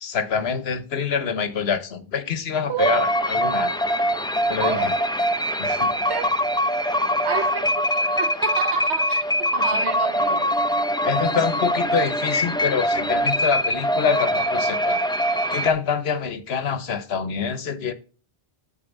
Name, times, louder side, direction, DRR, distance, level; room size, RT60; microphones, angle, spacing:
voice 1, 0.0-3.7 4.4-4.9 5.6-6.1 8.0-8.1 9.7-9.8 11.0-15.0 15.5-17.9, left 6 dB, 70° left, 1.1 m, -26 dB
voice 2, 2.7-3.1 4.5-4.9 6.1-6.3 7.2-7.9 8.2-9.2 9.5-10.6, right 7 dB, 75° right, 1.2 m, -28 dB
sound 1, 2.8-15.7, equal, 5° left, 0.4 m, -23 dB
8.8 x 4.4 x 7.2 m
omnidirectional pair, 1.1 m